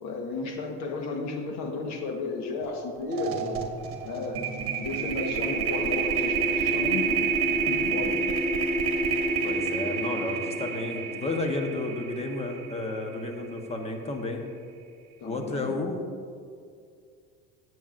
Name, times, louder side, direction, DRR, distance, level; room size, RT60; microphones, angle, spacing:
voice 1, 0.0-3.7 4.0-4.4 4.8-7.3 7.6-8.3 15.2-15.8, left 3 dB, 60° left, 3 dB, 1.3 m, -33 dB
sound 1, 2.6-2.8 3.1-13.3, right 5 dB, 45° right, 1.3 m, -28 dB
voice 2, 9.4-14.4 15.2-16.0, left 2 dB, 20° left, 3 dB, 1.1 m, -32 dB
13.0 x 7.9 x 2.6 m, 2.2 s
cardioid pair, 125°, 31 cm